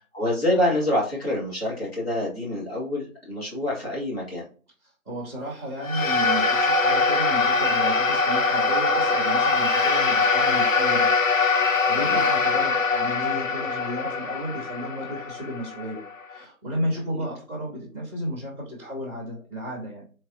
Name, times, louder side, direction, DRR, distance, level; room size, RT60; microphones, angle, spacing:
voice 1, 0.1-4.4 12.0-12.2 17.1-17.2, left 1 dB, 45° left, -4 dB, 1.4 m, -26 dB
voice 2, 5.0-11.1 11.6-16.0 16.3-20.1, equal, 10° left, -12 dB, 0.9 m, -33 dB
Melodica Dissonance, 5.8-16.4, left 4 dB, 65° left, 0.6 m, -22 dB
3.2 x 2.3 x 2.6 m, 0.40 s
figure-of-eight pair, 165°, 42 cm